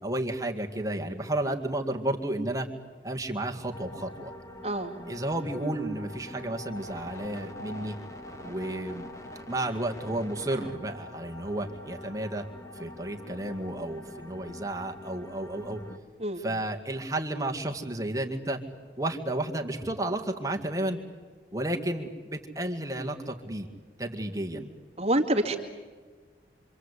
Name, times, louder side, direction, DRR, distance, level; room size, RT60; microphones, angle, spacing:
voice 1, 0.0-2.7 3.0-4.3 5.1-7.9 8.4-9.1 9.5-12.4 12.7-15.8 16.4-18.6 19.0-21.0 21.5-23.7 24.0-24.7, right 1 dB, 20° right, 2 dB, 2.0 m, -32 dB
sound 1, 3.7-16.0, left 1 dB, 20° left, 1.7 m, -44 dB
voice 2, 25.0-25.6, right 1 dB, 35° right, 4 dB, 2.1 m, -26 dB
26.5 x 25.5 x 8.3 m, 1.5 s
head